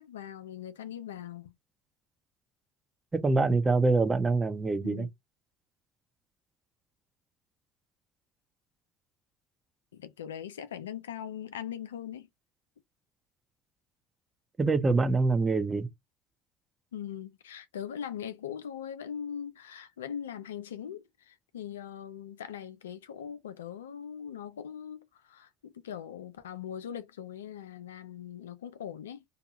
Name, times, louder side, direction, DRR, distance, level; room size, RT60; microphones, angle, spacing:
voice 1, 0.0-1.5 4.8-5.1 9.9-12.3 16.9-29.2, left 9 dB, 85° left, 0.3 m, -41 dB
voice 2, 3.1-5.1 14.6-15.9, right 3 dB, 25° right, 0.8 m, -25 dB
2.8 x 2.2 x 2.9 m
hypercardioid pair, 65°, 0 cm